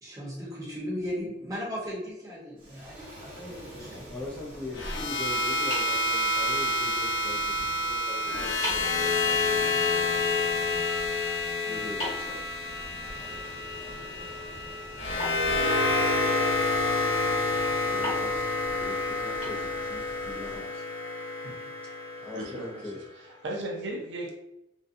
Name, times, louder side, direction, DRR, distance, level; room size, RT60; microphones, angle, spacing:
voice 1, 0.0-4.1, equal, 20° right, -7 dB, 0.9 m, -37 dB
Waves surf, 2.6-20.6, equal, 45° right, 1.0 m, -47 dB
voice 2, 4.1-10.4 11.6-12.4 17.9-20.8 22.2-23.0, left 2 dB, 5° left, -5 dB, 0.4 m, -42 dB
sound 1, 4.7-22.9, left 2 dB, 85° left, 0.6 m, -28 dB
sound 2, 5.7-6.8 8.0-8.1 8.6-9.0 12.0-13.2 15.2-16.3 18.0-20.1, left 1 dB, 40° left, 1.2 m, -39 dB
voice 3, 22.3-22.7 23.4-24.4, right 1 dB, 85° right, 1 dB, 0.5 m, -35 dB
2.6 x 2.2 x 2.5 m, 0.85 s
head